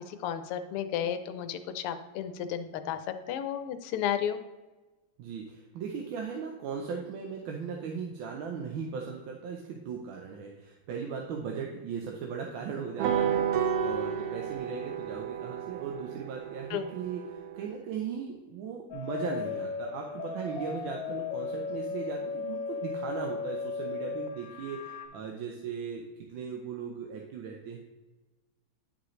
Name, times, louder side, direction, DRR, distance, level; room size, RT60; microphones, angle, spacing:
voice 1, 0.1-3.0 3.3-4.4 16.7-16.9, left 9 dB, 90° left, 10 dB, 1.6 m, -33 dB
voice 2, 5.2-26.0 26.3-27.8, right 6 dB, 70° right, 1 dB, 1.4 m, -38 dB
sound 1, 13.0-17.7, right 8 dB, 85° right, 1.6 m, -32 dB
sound 2, 18.9-25.1, left 5 dB, 70° left, 1.4 m, -36 dB
10.0 x 5.1 x 3.1 m, 1.2 s
omnidirectional pair, 2.4 m